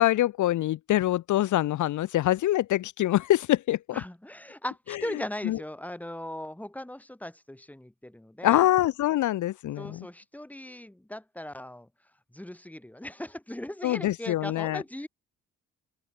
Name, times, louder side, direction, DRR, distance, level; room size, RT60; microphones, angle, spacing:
voice 1, 0.0-4.0 5.4-5.6 8.4-10.0 13.8-14.8, left 14 dB, 75° left, 1.2 m, -24 dB
voice 2, 3.9-8.7 9.8-11.9 12.3-15.1, left 1 dB, 5° left, 3.7 m, -39 dB
cardioid pair, 90°, 30 cm